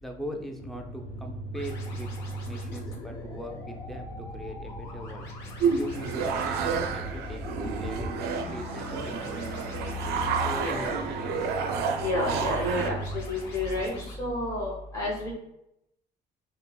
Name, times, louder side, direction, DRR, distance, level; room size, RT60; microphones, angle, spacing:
voice 1, 0.0-2.1 2.5-5.3 5.8-7.4 7.8-9.5 10.4-11.7, equal, ahead, 3 dB, 0.4 m, -40 dB
sound 1, 0.6-14.0, equal, 55° left, 1.2 m, -39 dB
sound 2, 1.5-14.1, left 2 dB, 80° left, 0.7 m, -46 dB
sound 3, 5.6-12.9, right 5 dB, 70° right, 0.4 m, -30 dB
voice 2, 10.4-10.9 12.0-13.9 14.2-15.3, left 1 dB, 20° left, -5 dB, 0.9 m, -30 dB
3.5 x 2.0 x 2.2 m, 0.82 s
cardioid pair, 110°, 17 cm